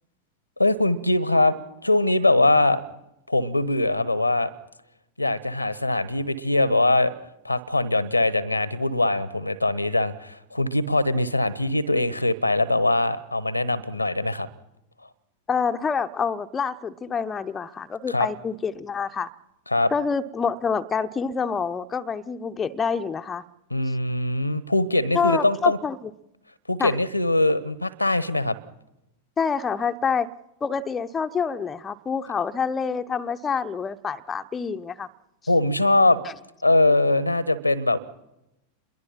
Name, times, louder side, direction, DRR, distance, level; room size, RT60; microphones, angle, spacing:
voice 1, 0.6-2.8 3.3-4.5 5.2-7.1 7.4-14.5 18.1-18.3 19.7-19.9 23.7-25.8 26.7-28.6 35.5-36.2 36.6-38.0, left 2 dB, 85° left, 1.1 m, -22 dB
voice 2, 15.5-19.3 19.9-23.4 25.1-26.0 26.8-26.9 29.4-30.3 30.6-35.1, left 6 dB, 20° left, 0.8 m, -27 dB
27.5 x 22.0 x 5.8 m
figure-of-eight pair, 90°, 0 cm